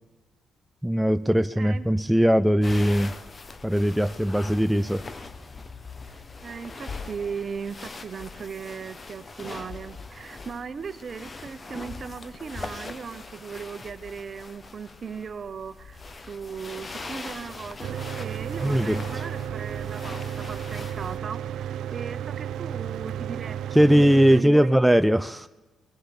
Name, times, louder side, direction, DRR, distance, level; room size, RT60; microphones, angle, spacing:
voice 1, 0.8-3.1 3.6-5.0 18.6-19.0 23.7-25.5, equal, 5° right, 11 dB, 0.4 m, -20 dB
sound 1, 2.6-21.2, left 3 dB, 30° left, 1.0 m, -41 dB
voice 2, 6.4-24.9, right 6 dB, 45° right, 12 dB, 0.9 m, -38 dB
Mechanical fan, 17.8-24.4, right 10 dB, 75° right, 0.4 m, -33 dB
21.0 x 7.8 x 7.0 m, 1.2 s
cardioid pair, 90°, 0 cm